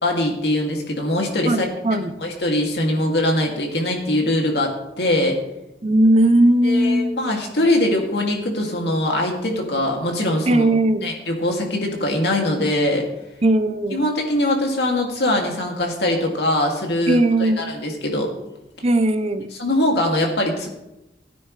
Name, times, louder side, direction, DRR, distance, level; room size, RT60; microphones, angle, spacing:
voice 1, 0.0-5.4 6.6-10.7 11.0-13.0 13.9-18.3 19.6-20.7, left 1 dB, 70° left, 1 dB, 2.5 m, -22 dB
voice 2, 1.5-2.1 5.8-7.2 10.5-11.1 13.4-14.0 17.1-17.6 18.8-19.5, right 1 dB, 35° right, 10 dB, 0.7 m, -18 dB
17.0 x 9.7 x 3.3 m, 0.92 s
head